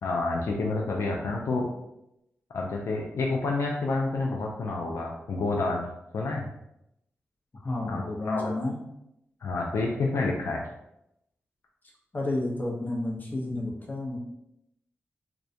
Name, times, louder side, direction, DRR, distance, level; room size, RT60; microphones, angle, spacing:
voice 1, 0.0-1.7 2.5-5.9 6.1-6.5 7.9-8.5 9.4-10.6, left 3 dB, 75° left, -1 dB, 0.3 m, -29 dB
voice 2, 7.6-8.8 12.1-14.2, left 2 dB, 40° left, -2 dB, 0.7 m, -31 dB
2.3 x 2.1 x 2.6 m, 0.83 s
cardioid pair, 60°, 5 cm